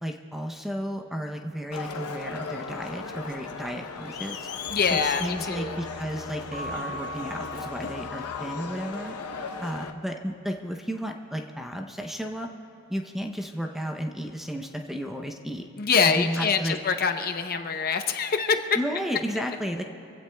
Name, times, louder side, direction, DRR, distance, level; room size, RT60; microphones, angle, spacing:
voice 1, 0.0-4.5 4.9-9.1 9.6-12.5 12.9-15.6 16.0-16.8 18.7-19.8, equal, ahead, 3 dB, 0.6 m, -33 dB
Crowd, 1.7-9.9, left 4 dB, 85° left, 0.8 m, -36 dB
voice 2, 4.7-5.7 15.8-18.7, left 5 dB, 40° left, 7 dB, 0.7 m, -25 dB
Keyboard (musical) / Bell, 6.5-8.9, right 1 dB, 40° right, 2.9 m, -40 dB
25.0 x 16.0 x 2.3 m, 2.9 s
head